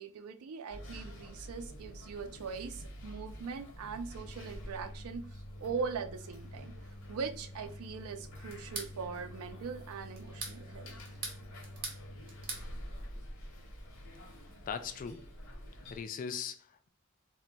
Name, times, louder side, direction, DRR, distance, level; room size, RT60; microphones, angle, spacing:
voice 1, 0.0-5.3 5.6-6.7 7.1-10.9, right 5 dB, 75° right, 7 dB, 0.4 m, -41 dB
sound 1, 0.7-16.0, equal, 65° left, 0.8 m, -47 dB
sound 2, 8.5-8.9 10.2-10.6 11.0-12.0 12.3-12.7, right 4 dB, 40° right, 0.7 m, -40 dB
voice 2, 14.7-15.2 15.9-16.9, left 6 dB, 40° left, 9 dB, 0.3 m, -39 dB
2.2 x 2.1 x 3.8 m, 0.43 s
head